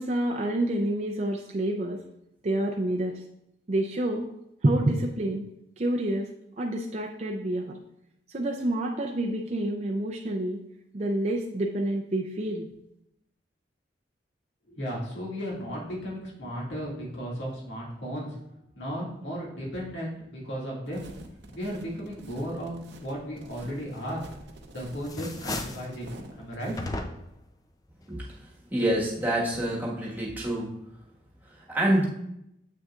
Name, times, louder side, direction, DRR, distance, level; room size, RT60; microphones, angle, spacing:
voice 1, 0.0-2.0 2.4-3.2 3.7-4.3 4.6-5.4 5.8-6.3 6.6-7.8 8.3-10.6 10.9-12.7, right 1 dB, 40° right, 1 dB, 0.5 m, -28 dB
voice 2, 14.7-18.3 18.7-21.1 21.5-24.2 24.7-26.1 26.4-26.7, equal, 85° left, -4 dB, 2.1 m, -35 dB
sound 1, 20.9-26.9, right 1 dB, 70° right, 0.7 m, -47 dB
sound 2, 24.2-24.6 25.0-25.9 26.8-27.4, left 2 dB, 20° left, 0.4 m, -35 dB
voice 3, 28.1-28.4 28.7-30.8 31.7-32.1, right 1 dB, 10° right, -4 dB, 1.4 m, -27 dB
7.6 x 6.3 x 2.4 m, 0.79 s
head